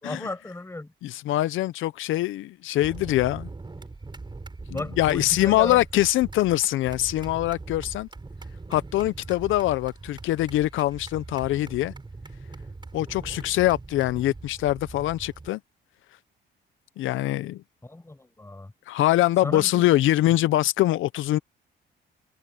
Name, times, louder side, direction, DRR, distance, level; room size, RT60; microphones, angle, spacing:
voice 1, 0.0-0.9 4.7-5.8 17.8-18.7 19.4-19.8, left 2 dB, 15° left, 6.2 m, -34 dB
voice 2, 1.0-3.5 4.7-8.1 8.7-11.9 12.9-15.6 17.0-17.6 18.9-21.4, left 15 dB, 80° left, 0.6 m, -23 dB
sound 1, 2.8-15.5, right 3 dB, 20° right, 7.2 m, -41 dB
cardioid pair, 90°, 20 cm